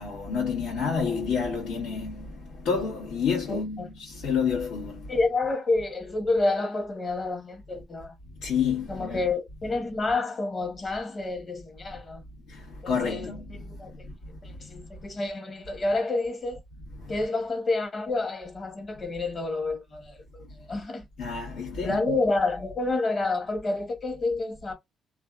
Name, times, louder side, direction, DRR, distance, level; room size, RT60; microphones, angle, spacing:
voice 1, 0.0-5.1 8.4-9.2 12.5-14.1 14.4-14.7 17.0-17.1 21.2-22.1, left 6 dB, 85° left, 1.2 m, -30 dB
voice 2, 3.5-3.9 5.1-8.1 8.9-12.2 12.8-13.3 13.6-13.9 14.4-16.6 17.1-21.1 21.8-24.7, left 2 dB, 40° left, 1.1 m, -29 dB
2.6 x 2.2 x 2.3 m
cardioid pair, 90°, 0 cm